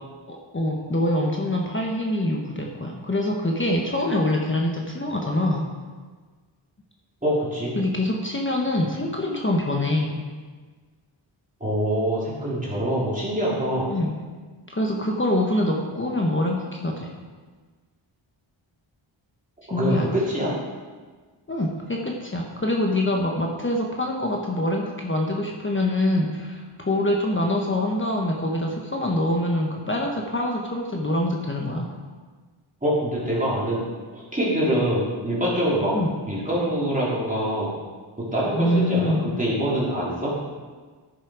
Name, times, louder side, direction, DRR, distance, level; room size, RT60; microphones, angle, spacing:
voice 1, 0.3-5.7 7.8-10.2 13.9-14.1 14.7-17.1 19.7-20.1 21.5-31.9 35.9-36.1 38.6-39.2, left 1 dB, 25° left, 0 dB, 1.1 m, -25 dB
voice 2, 7.2-7.7 11.6-13.9 19.7-20.5 32.8-33.8 34.1-35.9 36.3-37.7 38.3-40.3, equal, 15° right, -8 dB, 3.1 m, -24 dB
10.5 x 7.5 x 4.9 m, 1.4 s
wide cardioid pair, 85°, 47 cm